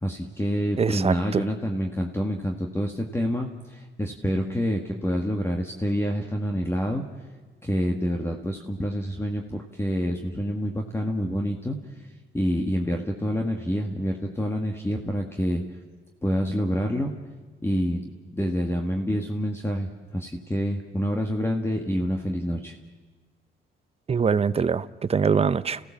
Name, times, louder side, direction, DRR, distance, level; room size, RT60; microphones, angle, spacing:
voice 1, 0.0-7.0 7.6-11.8 12.3-15.6 16.2-17.1 17.6-22.7, equal, 10° left, 2 dB, 1.8 m, -27 dB
voice 2, 0.8-1.4 24.1-25.8, right 6 dB, 30° right, 15 dB, 0.7 m, -23 dB
30.0 x 16.5 x 7.3 m, 1.3 s
cardioid pair, 90°, 20 cm